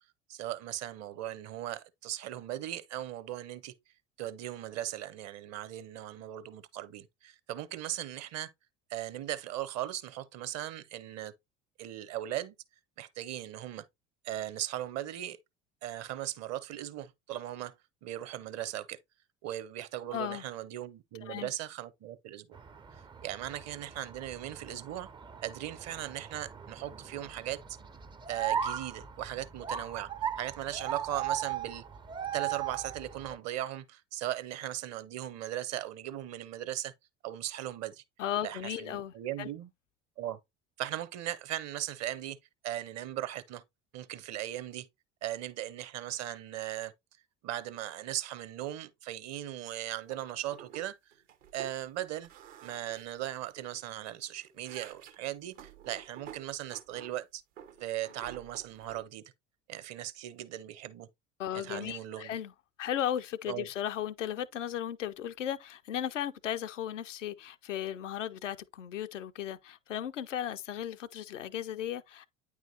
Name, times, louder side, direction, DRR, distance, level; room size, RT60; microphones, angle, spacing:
voice 1, 0.3-3.7 4.2-8.5 8.9-11.3 11.8-12.5 13.0-13.9 14.2-15.4 15.8-17.7 18.0-19.0 19.4-22.6 23.2-25.1 25.4-27.6 28.3-30.1 30.4-31.8 32.3-36.9 37.2-38.0 38.4-39.7 40.2-40.4 40.8-42.4 42.6-43.6 43.9-44.9 45.2-46.9 47.4-51.1 51.5-52.3 52.6-57.4 57.8-59.2 59.7-61.1 61.5-62.3 63.5-63.7, right 13 dB, 45° right, 0.7 m, -38 dB
voice 2, 20.1-20.4 21.2-21.5 38.2-39.5 61.4-62.5 62.8-72.3, left 10 dB, 80° left, 0.5 m, -36 dB
sound 1, 22.5-33.4, right 9 dB, 15° right, 0.4 m, -38 dB
sound 2, 50.1-50.2 50.5-50.9 51.1-51.8 52.2-53.8 54.2-57.1 57.6-59.0, right 9 dB, 70° right, 0.9 m, -51 dB
9.1 x 4.7 x 2.7 m
figure-of-eight pair, 65°, 37 cm